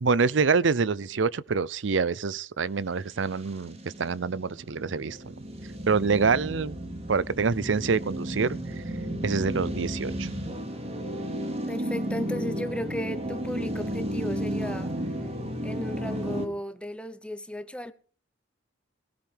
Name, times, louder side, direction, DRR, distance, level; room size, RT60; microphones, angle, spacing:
voice 1, 0.0-5.2 5.9-6.8 7.1-8.6 9.2-10.3, right 5 dB, 85° right, 0.6 m, -26 dB
sound 1, 3.2-16.5, equal, 35° right, 2.8 m, -33 dB
voice 2, 11.7-14.9 15.6-17.9, left 1 dB, 5° left, 1.0 m, -35 dB
18.0 x 17.5 x 3.5 m
head